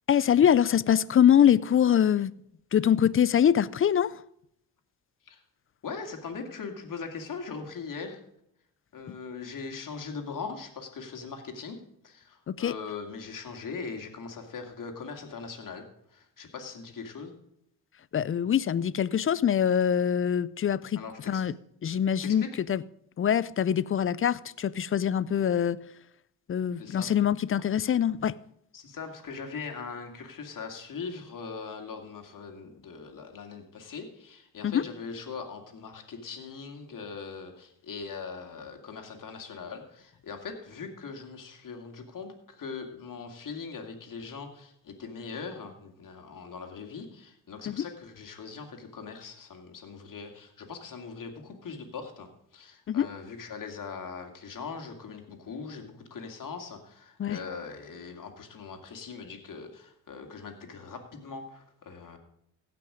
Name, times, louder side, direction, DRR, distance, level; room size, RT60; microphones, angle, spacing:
voice 1, 0.1-2.3 2.7-4.2 9.1-9.2 12.5-12.7 18.1-21.0 21.3-21.5 21.8-22.8 23.2-25.8 26.5-28.4 34.6-34.8 47.7-47.8 52.9-53.1 57.2-57.4, left 9 dB, 30° left, 0.4 m, -24 dB
voice 2, 5.8-8.2 8.9-11.8 12.0-15.8 16.1-17.3 20.9-21.4 22.2-22.5 26.8-27.1 28.7-62.2, left 5 dB, 50° left, 2.5 m, -41 dB
16.5 x 6.0 x 5.0 m
cardioid pair, 80°, 42 cm